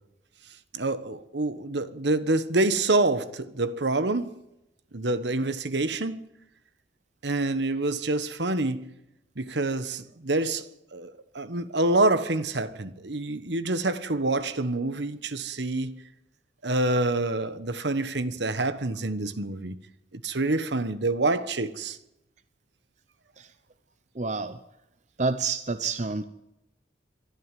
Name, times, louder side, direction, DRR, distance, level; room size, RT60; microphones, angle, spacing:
voice 1, 0.7-4.3 4.9-6.2 7.2-8.9 9.4-16.0 16.6-19.8 20.1-22.0, right 2 dB, 65° right, 1.2 m, -27 dB
voice 2, 24.1-24.6 25.2-26.2, right 4 dB, 40° right, 0.8 m, -28 dB
24.5 x 13.0 x 9.2 m
head